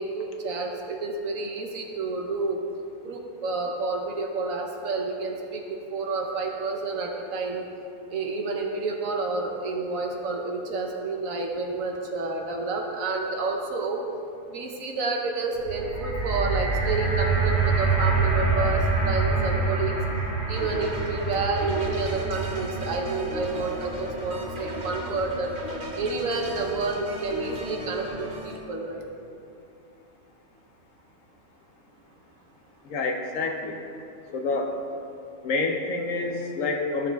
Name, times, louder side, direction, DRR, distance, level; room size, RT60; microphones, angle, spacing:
voice 1, 0.0-2.6 3.0-5.6 5.9-7.6 8.1-14.0 14.5-19.9 20.5-25.5 26.0-29.0, right 3 dB, 65° right, 1 dB, 1.1 m, -29 dB
sound 1, 15.6-25.8 26.5-26.6, right 3 dB, 20° left, 1.2 m, -27 dB
sound 2, 20.6-28.6, right 1 dB, 40° right, 0.9 m, -37 dB
voice 2, 32.8-33.8 34.3-34.8 35.4-37.1, left 3 dB, 65° left, 3 dB, 1.0 m, -28 dB
13.5 x 6.4 x 2.3 m, 2.6 s
omnidirectional pair, 1.6 m